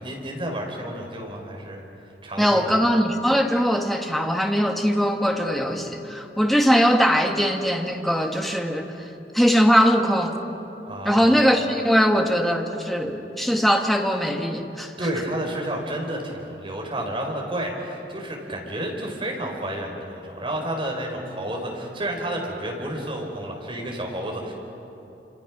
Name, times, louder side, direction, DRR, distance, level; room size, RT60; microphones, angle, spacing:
voice 1, 0.0-1.8 2.2-2.7 10.8-11.4 15.0-24.5, right 1 dB, 30° right, 0 dB, 4.3 m, -30 dB
voice 2, 2.4-8.9 9.3-10.4 11.0-14.9, equal, ahead, 3 dB, 1.6 m, -21 dB
28.0 x 27.0 x 6.1 m, 3.0 s
head